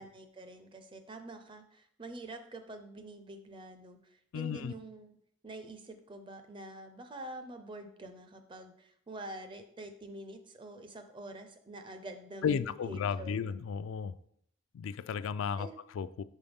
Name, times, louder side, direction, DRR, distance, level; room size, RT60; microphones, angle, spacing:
voice 1, 0.0-5.2 5.4-13.5 15.6-15.8, right 1 dB, 25° right, 8 dB, 0.5 m, -46 dB
voice 2, 4.3-4.7 12.4-14.1 14.7-15.7 16.0-16.2, left 6 dB, 80° left, 15 dB, 0.3 m, -33 dB
5.5 x 5.4 x 3.5 m, 0.69 s
head